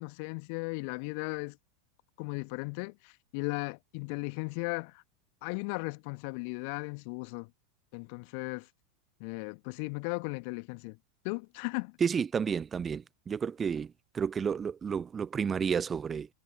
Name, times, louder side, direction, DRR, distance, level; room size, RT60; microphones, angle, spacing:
voice 1, 0.0-1.6 2.2-5.0 5.4-7.5 7.9-8.7 9.2-11.0 11.2-12.0, left 36 dB, 45° left, 1.7 m, -36 dB
voice 2, 12.0-13.9 14.1-16.3, right 6 dB, 20° right, 0.5 m, -31 dB
figure-of-eight pair, 90°, 0 cm